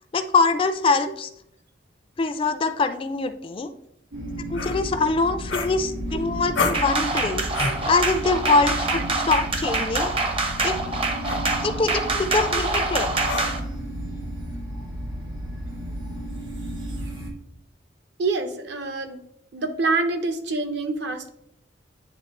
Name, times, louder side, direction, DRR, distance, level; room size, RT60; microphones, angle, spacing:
voice 1, 0.1-1.3 2.2-3.7 4.5-7.4 7.9-10.1 10.6-10.8 11.6-13.1, left 3 dB, 30° left, 10 dB, 0.3 m, -23 dB
sound 1, 4.1-17.3, equal, 85° right, 1.5 m, -33 dB
sound 2, 4.5-4.8 5.5-6.2 6.5-6.9 7.5-7.9 9.3-9.5 10.4-10.7 11.2-11.5 13.2-13.7, left 3 dB, 80° left, 0.8 m, -29 dB
sound 3, 6.7-13.6, right 3 dB, 30° right, 0.6 m, -26 dB
voice 2, 18.2-19.2 19.5-21.3, right 3 dB, 60° right, 7 dB, 0.7 m, -26 dB
9.0 x 3.5 x 2.9 m, 0.76 s
head